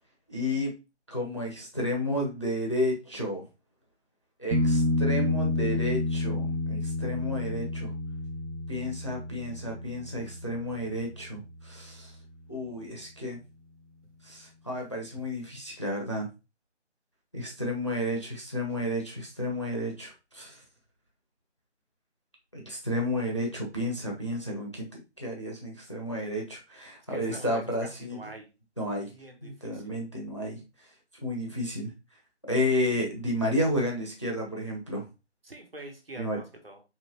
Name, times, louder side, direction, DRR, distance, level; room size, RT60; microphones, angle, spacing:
voice 1, 0.3-0.7 1.1-3.4 4.4-7.9 8.7-12.1 12.5-13.4 14.2-16.3 17.3-20.6 22.5-28.2 28.8-29.1 29.4-30.6 31.2-31.9 32.5-35.1 36.2-36.4, left 1 dB, 25° left, 0 dB, 0.7 m, -31 dB
sound 1, 4.5-12.1 15.2-15.3, left 2 dB, 80° right, 0.8 m, -30 dB
voice 2, 27.1-28.5 29.1-29.8 35.4-36.8, right 2 dB, 55° right, 3 dB, 1.3 m, -44 dB
4.7 x 3.2 x 2.9 m, 0.27 s
figure-of-eight pair, 165°, 35 cm